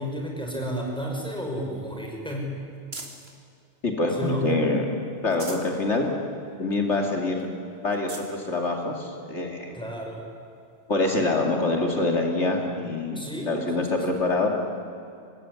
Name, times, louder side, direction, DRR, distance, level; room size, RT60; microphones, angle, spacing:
voice 1, 0.0-2.5 4.2-4.5 9.7-10.2 13.2-14.2, equal, 5° left, 0 dB, 5.7 m, -32 dB
sound 1, 0.7-3.4 3.9-4.7 5.1-5.8 6.2-6.3 6.7-6.8 7.4-7.5 7.9-8.3 9.2-9.3 11.0-11.1, right 2 dB, 60° right, 3.0 m, -44 dB
voice 2, 3.8-4.9 5.2-6.1 6.6-7.5 7.8-9.8 10.9-14.5, left 2 dB, 75° left, 2 dB, 2.9 m, -25 dB
24.5 x 20.0 x 9.7 m, 2.5 s
omnidirectional pair, 1.2 m